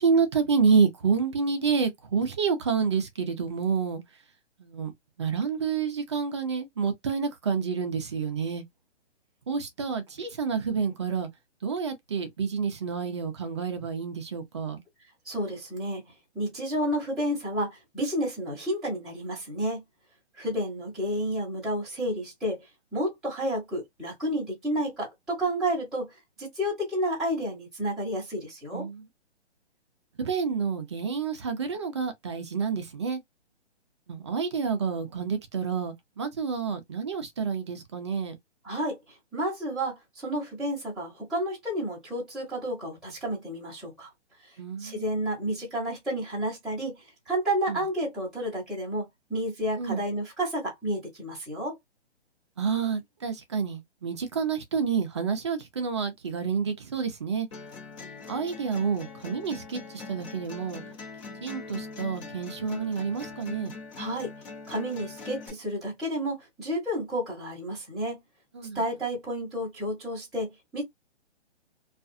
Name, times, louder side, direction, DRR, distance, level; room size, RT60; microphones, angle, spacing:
voice 1, 0.0-4.0 4.6-4.9 5.2-8.6 9.5-11.3 11.6-14.8 28.7-29.1 30.2-33.2 34.1-38.3 44.6-45.0 47.7-47.8 49.8-50.0 52.6-57.5 58.3-60.8 61.4-63.7 68.5-68.8, right 5 dB, 25° right, 0.4 m, -28 dB
voice 2, 15.3-16.0 16.3-19.8 20.4-22.6 22.9-28.9 38.6-39.0 39.3-44.1 44.8-51.8 64.0-64.3 64.7-68.2 68.7-70.8, equal, ahead, 1.0 m, -31 dB
sound 1, 57.5-65.5, left 4 dB, 30° left, 1.0 m, -42 dB
2.4 x 2.3 x 2.6 m
hypercardioid pair, 150°, 34 cm